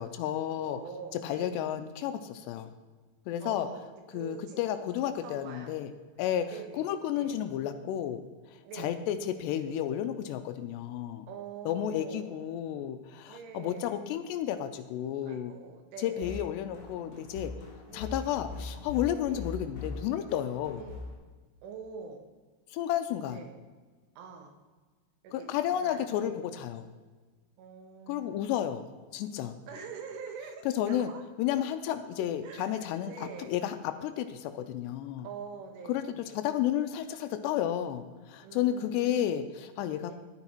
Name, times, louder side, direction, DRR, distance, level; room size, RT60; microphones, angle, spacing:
voice 1, 0.0-0.8 1.2-2.7 3.3-3.7 4.1-5.9 6.2-8.2 8.5-11.3 11.7-15.6 16.0-17.5 17.9-20.9 22.7-23.4 25.3-26.9 28.1-28.8 29.1-29.6 30.8-31.1 31.4-35.3 35.9-36.0 36.3-40.2, left 11 dB, 85° left, 9 dB, 2.5 m, -32 dB
voice 2, 0.7-1.7 3.4-3.9 4.1-4.6 4.9-5.7 6.5-7.4 8.6-9.0 11.3-12.7 13.3-14.0 15.3-16.5 17.9-18.3 19.3-19.5 20.8-21.0 21.6-22.2 23.3-23.5 24.2-24.5 25.2-26.4 27.6-28.9 29.7-31.3 32.4-33.5 35.2-36.4 38.4-39.3 40.0-40.2, right 6 dB, 85° right, 4 dB, 3.9 m, -45 dB
sound 1, 16.2-21.1, left 3 dB, 40° left, 2.8 m, -41 dB
12.0 x 9.5 x 4.5 m, 1.3 s
omnidirectional pair, 5.4 m